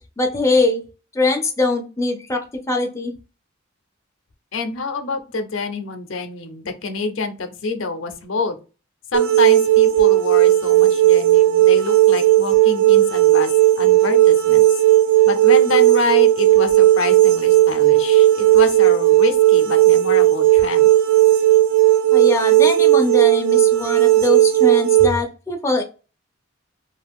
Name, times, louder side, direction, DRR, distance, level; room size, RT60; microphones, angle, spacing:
voice 1, 0.2-0.9 1.1-3.1 22.1-25.8, left 3 dB, 15° left, 2 dB, 0.4 m, -22 dB
voice 2, 4.5-8.6 9.1-13.5 13.8-14.7 15.2-20.9, left 4 dB, 65° left, 7 dB, 0.5 m, -27 dB
sound 1, 9.1-25.1, right 14 dB, 70° right, 0.4 m, -14 dB
2.4 x 2.2 x 3.4 m, 0.33 s
head